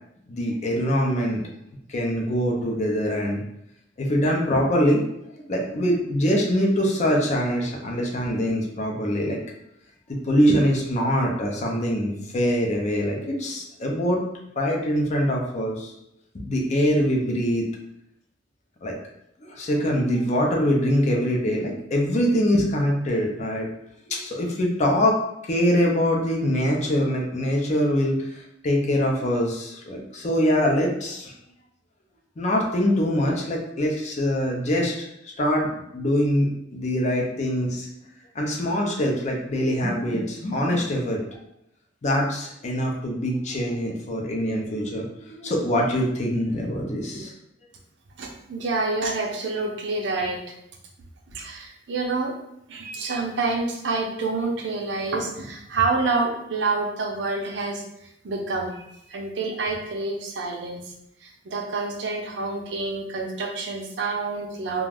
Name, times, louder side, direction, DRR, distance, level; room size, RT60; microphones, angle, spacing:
voice 1, 0.3-1.4 1.9-3.4 4.0-5.0 5.3-9.4 10.1-14.2 14.6-15.9 16.3-17.6 18.8-18.9 19.4-23.7 24.1-25.2 25.4-31.3 32.4-35.1 35.4-37.9 38.3-41.2 42.0-47.3, equal, 40° left, 0 dB, 0.5 m, -23 dB
voice 2, 48.2-50.5 51.3-52.3 52.7-57.8 58.2-60.8 61.2-64.9, right 3 dB, 70° right, 1 dB, 0.5 m, -28 dB
2.4 x 2.2 x 3.3 m, 0.79 s
head